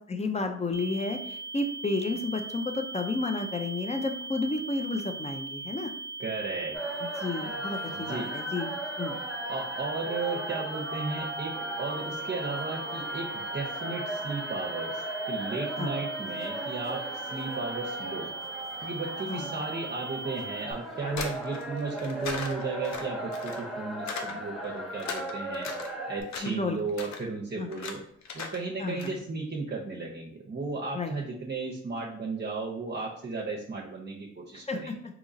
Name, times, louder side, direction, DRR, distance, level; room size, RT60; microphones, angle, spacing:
voice 1, 0.1-5.9 7.0-8.7 9.0-9.2 15.8-15.9 19.3-19.5 26.4-26.8 27.6-27.7 28.8-29.2 30.9-31.1 34.5-35.0, left 3 dB, 20° left, 6 dB, 0.6 m, -31 dB
sound 1, 0.7-20.7, right 3 dB, 40° left, 0.9 m, -39 dB
voice 2, 6.2-6.8 7.9-8.3 9.5-18.3 18.8-28.0 28.3-35.0, right 3 dB, 35° right, -3 dB, 0.7 m, -35 dB
sound 2, 6.7-26.2, right 1 dB, ahead, 1.2 m, -37 dB
sound 3, 21.1-23.7 24.1-24.3 24.7-25.9 26.2-26.6 26.9-27.2 27.7-27.9 28.2-28.6 28.8-29.1, left 4 dB, 65° left, 0.6 m, -37 dB
3.7 x 2.9 x 2.6 m, 0.67 s
supercardioid pair, 45°, 30 cm